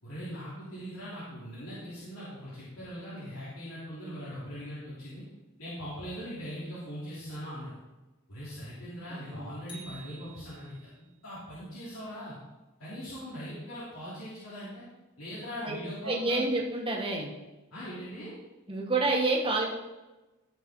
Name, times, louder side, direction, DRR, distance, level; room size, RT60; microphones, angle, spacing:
voice 1, 0.0-5.2 5.6-7.8 8.3-12.3 12.8-14.8 15.2-16.4 17.7-18.3, equal, 70° left, -10 dB, 3.5 m, -40 dB
voice 2, 9.1-9.5 15.6-15.8 16.0-17.3 18.7-19.7, right 2 dB, 25° right, -1 dB, 1.7 m, -28 dB
sound 1, 9.7-11.1, right 2 dB, 25° left, 2.4 m, -50 dB
15.5 x 5.7 x 3.9 m, 1.1 s
head